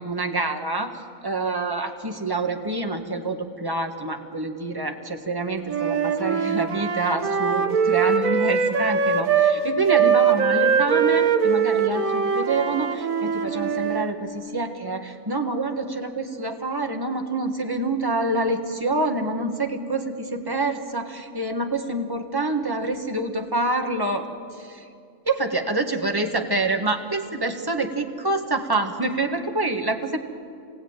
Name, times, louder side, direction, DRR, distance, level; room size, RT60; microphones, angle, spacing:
voice 1, 0.0-24.3 24.6-24.8 25.2-30.2, right 2 dB, 15° right, 4 dB, 1.5 m, -27 dB
Wind instrument woodwind instrument, 5.6-9.6 9.9-14.1, right 6 dB, 80° right, 1.7 m, -22 dB
26.5 x 19.0 x 9.0 m, 2.4 s
omnidirectional pair, 1.4 m